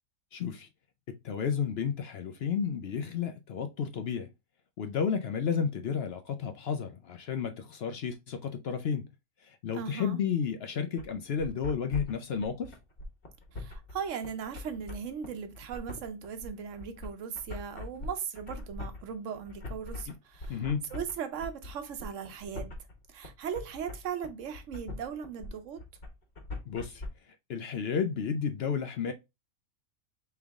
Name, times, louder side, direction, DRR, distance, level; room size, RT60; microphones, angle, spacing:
voice 1, 0.3-0.7 1.1-4.3 4.8-9.1 9.4-12.8 20.5-20.8 26.7-29.1, left 7 dB, 65° left, 0.6 m, -32 dB
voice 2, 9.7-10.2 13.5-20.6 20.9-22.7 23.1-25.8, right 7 dB, 65° right, 1.0 m, -38 dB
sound 1, 11.0-27.1, left 2 dB, 40° left, 1.3 m, -42 dB
3.7 x 3.5 x 3.4 m
omnidirectional pair, 1.5 m